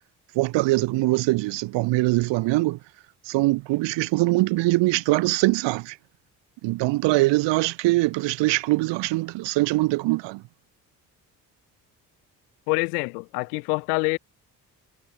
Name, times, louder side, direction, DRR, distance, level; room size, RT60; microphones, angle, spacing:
voice 1, 0.3-2.8 3.3-5.9 6.6-10.4, right 20 dB, 70° right, 1.2 m, -22 dB
voice 2, 12.7-14.2, left 31 dB, 85° left, 5.3 m, -26 dB
hypercardioid pair, 50°, 45 cm